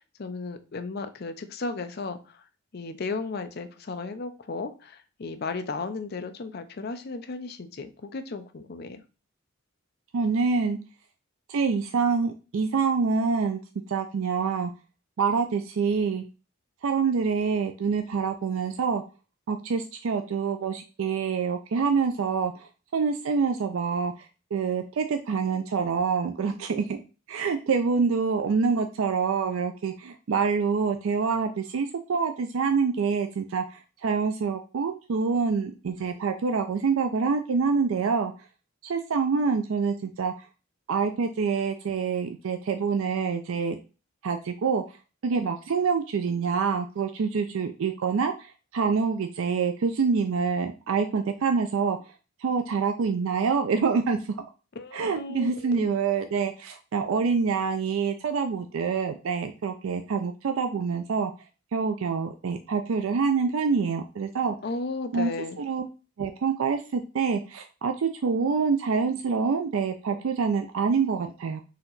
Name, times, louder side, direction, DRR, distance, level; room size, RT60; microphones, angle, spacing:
voice 1, 0.0-2.4 2.7-9.0 54.8-55.9 64.6-65.6, left 3 dB, 45° left, 9 dB, 0.5 m, -35 dB
voice 2, 10.1-10.8 11.5-13.6 13.9-14.7 15.2-16.2 16.8-19.0 19.5-24.3 24.5-27.0 27.3-38.3 38.8-40.3 40.9-43.8 44.2-44.8 45.2-52.0 52.4-54.2 54.9-61.3 61.7-64.5 65.1-65.3 65.6-65.8 66.2-71.6, right 5 dB, 70° right, 6 dB, 0.4 m, -26 dB
4.2 x 2.9 x 3.9 m, 0.33 s
head